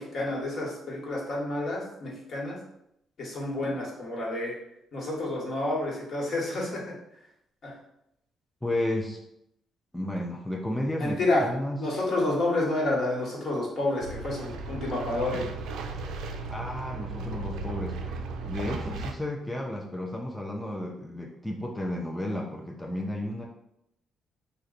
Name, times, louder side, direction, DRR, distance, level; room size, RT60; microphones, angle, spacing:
voice 1, 0.0-2.6 3.2-4.6 4.9-6.9 7.6-7.8 11.0-15.5, left 2 dB, 55° left, -3 dB, 1.1 m, -29 dB
voice 2, 8.6-9.2 9.9-12.0 16.5-23.5, left 1 dB, 5° left, -1 dB, 0.4 m, -33 dB
sound 1, 14.0-19.1, right 3 dB, 85° right, 0.3 m, -36 dB
3.0 x 2.1 x 3.8 m, 0.79 s
cardioid pair, 90°, 0 cm